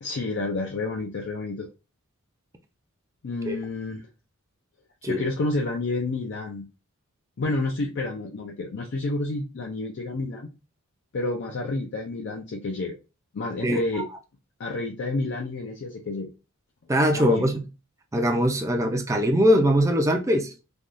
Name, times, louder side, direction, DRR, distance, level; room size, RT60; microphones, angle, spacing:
voice 1, 0.0-1.7 3.2-4.1 5.0-6.7 7.4-10.5 11.1-13.0 13.3-14.1 14.6-16.3 17.1-17.5, left 2 dB, 55° left, 0.4 m, -29 dB
voice 2, 16.9-17.6 18.1-20.5, equal, 15° right, 0.4 m, -21 dB
3.4 x 2.3 x 2.5 m
head